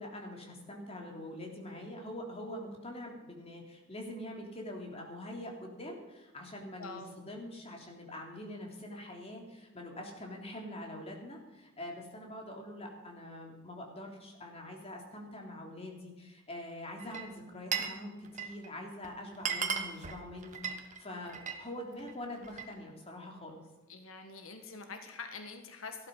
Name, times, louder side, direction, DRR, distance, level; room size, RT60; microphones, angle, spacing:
voice 1, 0.0-23.6, left 1 dB, 30° left, 1 dB, 3.3 m, -44 dB
voice 2, 6.8-7.1 23.9-26.1, left 4 dB, 85° left, 6 dB, 1.4 m, -45 dB
Glass, 17.0-18.0 18.2-18.7 19.0-19.1 19.3-21.6 22.0-22.7, right 6 dB, 40° right, 1.4 m, -36 dB
15.0 x 12.0 x 5.6 m, 1.1 s
head